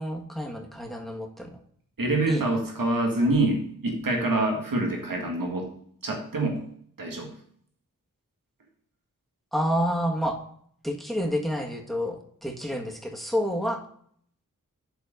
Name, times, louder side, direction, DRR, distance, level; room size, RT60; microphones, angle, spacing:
voice 1, 0.0-1.6 2.3-2.4 9.5-10.4 10.8-13.8, equal, ahead, 1 dB, 1.6 m, -29 dB
voice 2, 2.0-5.7 6.0-6.6 7.0-7.3, right 2 dB, 80° right, 1 dB, 1.8 m, -26 dB
7.1 x 4.3 x 6.4 m, 0.63 s
cardioid pair, 40°, 33 cm